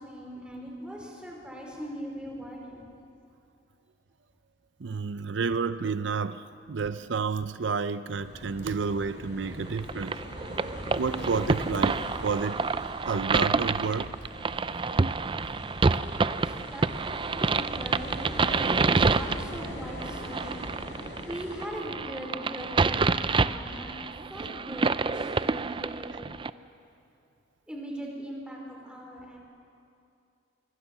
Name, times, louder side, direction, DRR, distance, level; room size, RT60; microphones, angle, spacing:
voice 1, 0.0-2.9 15.8-20.8 21.3-26.1 27.7-29.4, equal, 5° right, 4.8 m, -40 dB
voice 2, 4.8-10.2 11.0-12.6 13.1-14.1 26.1-26.2, right 5 dB, 80° right, 0.6 m, -30 dB
sound 1, 8.2-21.6, left 1 dB, 70° left, 5.2 m, -41 dB
sound 2, 9.8-26.5, right 4 dB, 30° right, 0.5 m, -28 dB
26.0 x 23.0 x 7.2 m
head